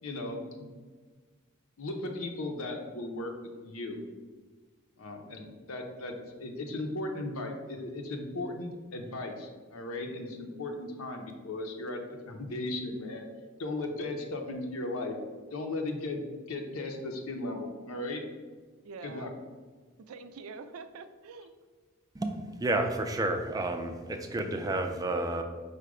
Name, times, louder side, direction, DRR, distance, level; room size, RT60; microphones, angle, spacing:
voice 1, 0.0-0.7 1.8-3.3 3.6-4.0 5.0-13.3 13.6-15.1 15.5-16.2 16.5-18.2 19.0-19.3, left 2 dB, 85° left, 4 dB, 0.7 m, -36 dB
voice 2, 18.8-19.3 20.0-21.5, right 4 dB, 90° right, 10 dB, 0.4 m, -45 dB
voice 3, 22.6-25.4, right 2 dB, 15° right, 5 dB, 0.3 m, -30 dB
4.9 x 2.2 x 4.8 m, 1.4 s
head